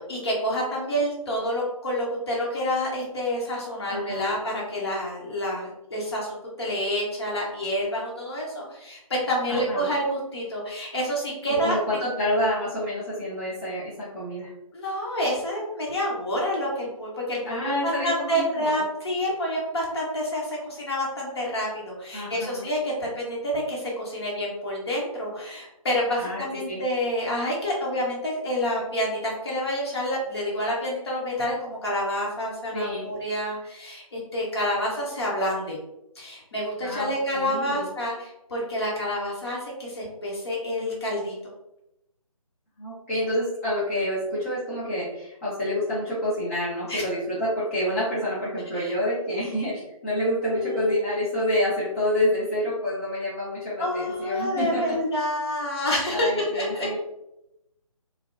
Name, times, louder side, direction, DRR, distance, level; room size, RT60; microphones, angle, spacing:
voice 1, 0.1-11.8 14.7-35.8 36.2-41.4 46.9-47.0 48.7-48.9 50.5-51.0 53.8-57.0, equal, 45° left, -4 dB, 0.9 m, -28 dB
voice 2, 3.9-4.3 9.5-9.9 11.6-14.5 17.5-18.8 22.1-22.7 26.2-26.8 32.7-33.1 36.8-37.9 42.8-55.0 56.1-57.0, left 1 dB, 20° left, -10 dB, 0.5 m, -28 dB
2.5 x 2.0 x 2.5 m, 0.88 s
figure-of-eight pair, 150°, 18 cm